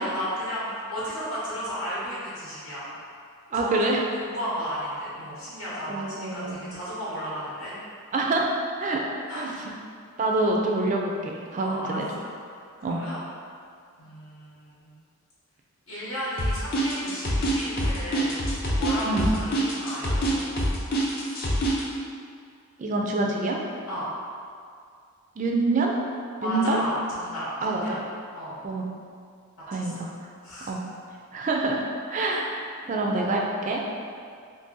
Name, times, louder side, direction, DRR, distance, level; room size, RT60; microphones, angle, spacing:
voice 1, 0.0-2.9 3.5-3.7 4.2-7.8 9.3-9.6 11.6-12.3 12.9-13.2 14.0-14.9 15.9-18.4 18.8-20.6 23.9-24.1 26.4-28.0 28.3-28.6 29.7-29.9 30.4-30.7 32.1-32.4 32.8-32.9, equal, 65° left, -9 dB, 0.9 m, -34 dB
voice 2, 3.5-4.0 5.9-6.7 8.1-9.1 9.3-9.5 10.2-12.1 12.8-13.0 19.1-19.3 22.8-23.6 25.4-25.9 26.4-26.8 27.6-28.0 28.6-28.9 29.7-30.1 30.7-30.8 31.3-31.8 32.1-32.5 32.9-33.8, right 2 dB, 35° right, 0 dB, 0.3 m, -26 dB
sound 1, 16.4-21.8, right 1 dB, 40° left, 0.5 m, -25 dB
2.7 x 2.6 x 3.7 m, 2.3 s
head